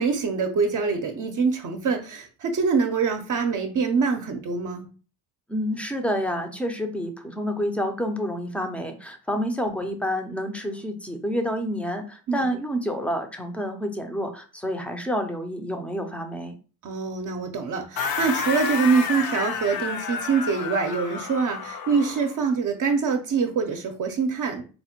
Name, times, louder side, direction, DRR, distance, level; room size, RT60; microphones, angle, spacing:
voice 1, 0.0-4.8 9.7-9.8 12.3-12.5 16.8-24.6, right 5 dB, 50° right, 4 dB, 0.6 m, -24 dB
voice 2, 5.5-16.6, equal, 5° left, 5 dB, 0.4 m, -28 dB
sound 1, 18.0-22.4, left 6 dB, 60° left, 0.6 m, -30 dB
4.1 x 2.1 x 2.8 m, 0.36 s
cardioid pair, 105°, 42 cm